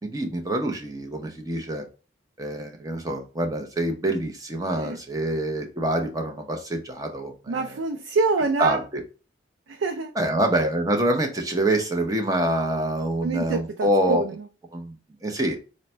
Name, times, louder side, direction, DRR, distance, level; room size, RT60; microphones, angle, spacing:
voice 1, 0.0-1.8 2.4-7.8 8.6-9.0 10.2-14.2 14.7-15.6, right 1 dB, 20° right, 0.6 m, -26 dB
voice 2, 7.5-8.8 9.7-10.1 13.2-14.5, right 3 dB, 90° right, 0.4 m, -26 dB
3.9 x 2.1 x 4.3 m
head